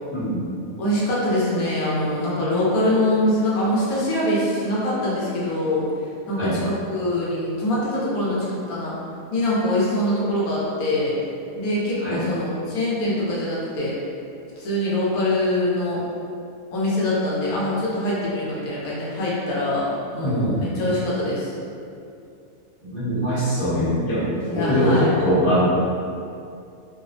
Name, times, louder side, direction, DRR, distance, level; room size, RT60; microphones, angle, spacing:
voice 1, 0.1-0.4 6.4-6.5 12.0-12.2 20.2-20.7 22.8-24.3 24.5-25.7, equal, 25° left, -12 dB, 0.8 m, -22 dB
voice 2, 0.8-5.8 6.3-8.9 9.3-11.2 11.6-13.9 14.6-16.0 16.7-21.5 24.5-25.1, left 1 dB, 85° left, -7 dB, 1.1 m, -23 dB
2.8 x 2.0 x 2.5 m, 2.5 s
omnidirectional pair, 1.5 m